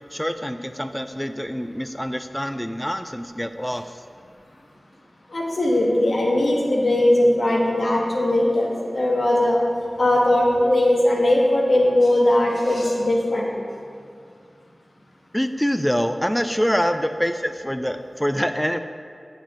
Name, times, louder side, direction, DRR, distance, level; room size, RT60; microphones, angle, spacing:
voice 1, 0.1-4.0 15.3-18.8, equal, 5° left, 9 dB, 0.4 m, -25 dB
voice 2, 5.3-9.6 10.0-13.5, left 1 dB, 65° left, -2 dB, 1.6 m, -19 dB
9.2 x 7.2 x 3.8 m, 2.3 s
wide cardioid pair, 55°, 0 cm